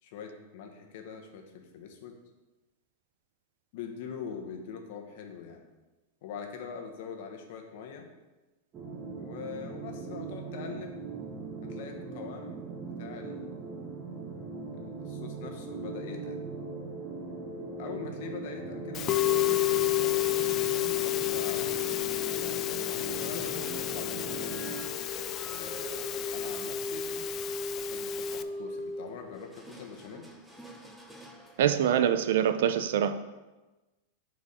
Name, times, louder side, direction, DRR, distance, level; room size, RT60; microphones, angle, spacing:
voice 1, 0.0-2.2 3.7-5.7 6.2-8.1 9.1-11.0 11.6-12.6 13.0-13.7 14.7-16.4 17.8-20.2 20.9-24.7 25.5-30.3, left 6 dB, 60° left, 3 dB, 1.2 m, -43 dB
sound 1, 8.7-24.8, right 4 dB, 25° right, 1.1 m, -40 dB
Musical instrument, 18.9-28.4, left 14 dB, 30° left, 0.3 m, -30 dB
sound 2, 23.3-31.6, left 1 dB, ahead, 0.8 m, -40 dB
voice 2, 31.6-33.2, right 9 dB, 70° right, 11 dB, 0.5 m, -25 dB
8.7 x 4.6 x 4.2 m, 1.1 s
supercardioid pair, 150°, 0 cm